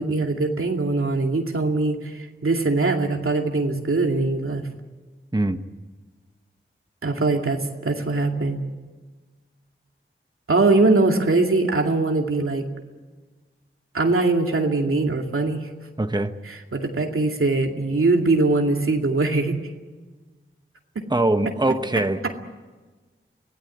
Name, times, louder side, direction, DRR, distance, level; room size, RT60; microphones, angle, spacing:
voice 1, 0.0-4.6 7.0-8.6 10.5-12.7 13.9-15.7 16.5-19.5, right 3 dB, 90° right, 3 dB, 2.4 m, -22 dB
voice 2, 16.0-16.3 21.1-22.2, right 2 dB, 20° right, 8 dB, 1.2 m, -22 dB
24.5 x 17.0 x 9.5 m, 1.3 s
wide cardioid pair, 55°, 21 cm